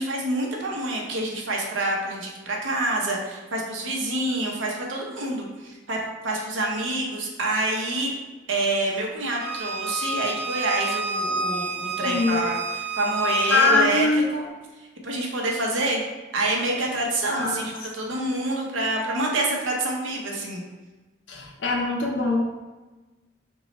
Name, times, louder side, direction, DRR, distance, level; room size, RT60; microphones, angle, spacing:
voice 1, 0.0-8.1 8.5-12.6 13.0-14.5 14.8-16.0 16.3-20.6, right 2 dB, 80° right, -1 dB, 0.7 m, -27 dB
Bowed string instrument, 9.4-13.8, right 2 dB, 45° right, 0.5 m, -29 dB
voice 2, 12.0-12.4 13.5-14.3 17.3-17.6 18.0-18.2 21.3-22.5, left 3 dB, 70° left, 0 dB, 0.5 m, -23 dB
3.0 x 2.3 x 4.0 m, 1.2 s
head